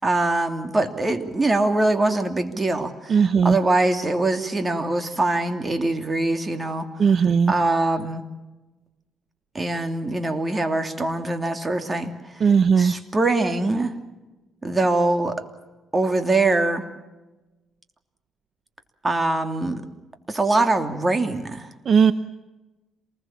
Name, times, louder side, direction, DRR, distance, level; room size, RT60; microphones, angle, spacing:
voice 1, 0.0-8.2 9.5-13.9 14.6-15.3 15.9-16.8 19.0-19.8 20.3-21.7, right 2 dB, 25° right, 7 dB, 3.0 m, -23 dB
voice 2, 3.1-3.6 7.0-7.5 12.4-12.9 21.9-22.1, right 6 dB, 55° right, 13 dB, 0.8 m, -17 dB
27.5 x 20.5 x 7.4 m, 1.1 s
cardioid pair, 90°, 0 cm